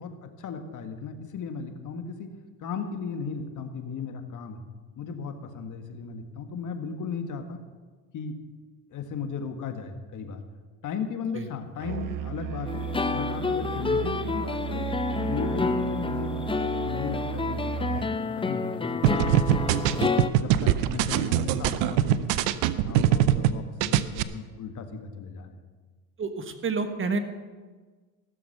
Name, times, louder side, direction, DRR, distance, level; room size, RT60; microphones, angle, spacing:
voice 1, 0.0-2.3 2.6-4.6 5.0-7.6 8.1-8.4 8.9-10.4 10.8-12.8 13.1-14.9 15.3-16.5 16.8-20.1 20.4-22.3 22.8-25.6, left 5 dB, 45° left, 6 dB, 1.7 m, -36 dB
Musical instrument, 11.8-18.2, right 9 dB, 50° right, 1.0 m, -34 dB
sound 1, 12.7-20.3, left 4 dB, 15° left, 0.7 m, -29 dB
sound 2, 19.0-23.5 23.8-24.2, right 12 dB, 75° right, 0.7 m, -22 dB
voice 2, 26.2-27.2, right 4 dB, 30° right, 8 dB, 1.5 m, -30 dB
15.5 x 7.1 x 6.6 m, 1.4 s
supercardioid pair, 85°, 40 cm